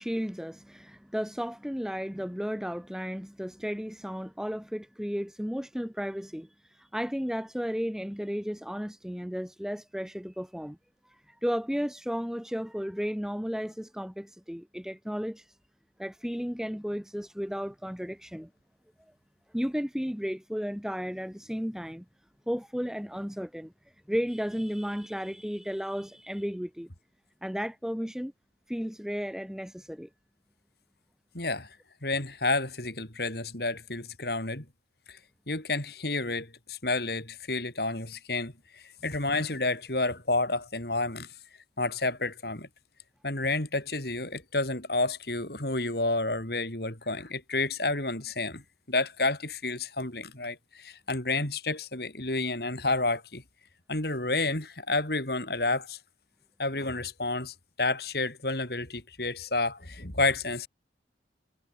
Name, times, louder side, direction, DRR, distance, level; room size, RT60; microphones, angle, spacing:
voice 1, 0.0-10.8 11.0-15.5 16.0-18.5 19.5-22.0 22.5-23.7 24.1-26.9 27.4-28.3 28.7-30.1, equal, 5° right, 1.3 m, -34 dB
voice 2, 31.3-31.7 32.0-34.6 35.1-35.2 35.5-41.3 41.8-42.7 43.2-48.6 48.9-53.4 53.9-56.0 56.6-60.7, left 2 dB, 55° left, 4.5 m, -30 dB
head